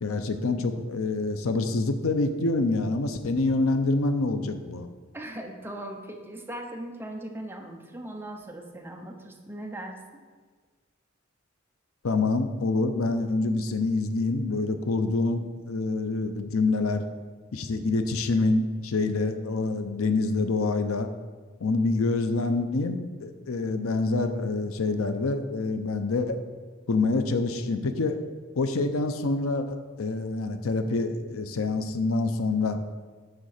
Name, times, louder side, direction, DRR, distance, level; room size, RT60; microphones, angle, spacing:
voice 1, 0.0-4.9 12.0-17.0 17.5-21.1 21.6-26.4 26.9-28.2 28.5-32.8, left 3 dB, 85° left, 8 dB, 0.7 m, -26 dB
voice 2, 5.1-10.2, right 1 dB, 10° right, 2 dB, 0.8 m, -39 dB
9.5 x 3.8 x 6.5 m, 1.5 s
head